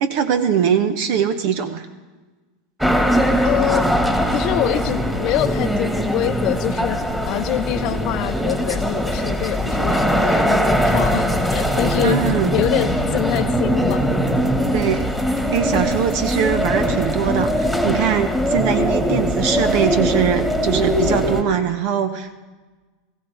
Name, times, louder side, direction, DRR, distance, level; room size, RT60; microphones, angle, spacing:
voice 1, 0.0-1.9 12.0-12.5 14.7-15.0 15.5-22.3, right 8 dB, 60° right, 9 dB, 0.9 m, -21 dB
sound 1, 2.8-21.4, equal, 5° right, 1.8 m, -21 dB
voice 2, 3.4-3.9 4.3-12.2 12.5-14.0, left 15 dB, 55° left, 8 dB, 0.5 m, -24 dB
sound 2, 11.3-17.2, right 4 dB, 40° right, 2.6 m, -37 dB
20.0 x 16.0 x 3.6 m, 1.3 s
hypercardioid pair, 100°, 0 cm